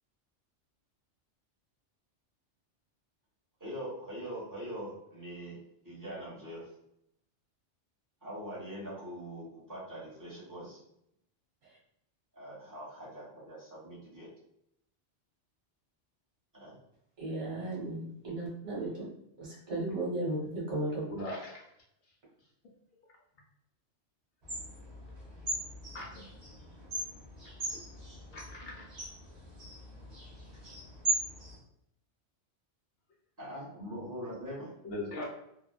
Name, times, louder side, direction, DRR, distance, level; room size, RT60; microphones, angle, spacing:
voice 1, 3.6-5.6 5.8-6.7 8.2-10.8 12.3-14.3 16.5-16.7 33.4-34.7, equal, 15° right, -7 dB, 1.1 m, -42 dB
voice 2, 17.2-19.1 19.4-21.1, right 2 dB, 75° right, -6 dB, 1.4 m, -35 dB
voice 3, 21.1-21.6 25.9-26.2 28.3-28.9 34.8-35.2, left 1 dB, 65° left, -2 dB, 0.7 m, -39 dB
sound 1, 24.4-31.6, right 2 dB, 40° right, 0.8 m, -39 dB
2.8 x 2.1 x 2.2 m, 0.76 s
omnidirectional pair, 1.2 m